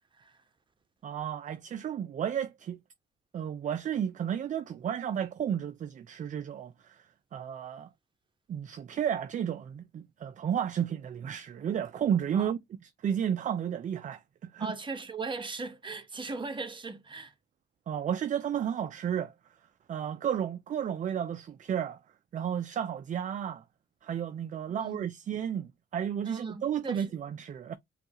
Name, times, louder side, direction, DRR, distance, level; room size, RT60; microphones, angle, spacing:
voice 1, 1.0-2.8 3.3-7.9 8.5-12.6 13.0-14.7 17.9-19.3 19.9-22.0 22.3-23.6 24.0-27.7, right 9 dB, 40° right, 0.4 m, -32 dB
voice 2, 14.6-17.3 24.7-25.1 26.2-27.0, right 3 dB, 25° right, 1.0 m, -38 dB
5.2 x 2.4 x 2.9 m
cardioid pair, 90°, 20 cm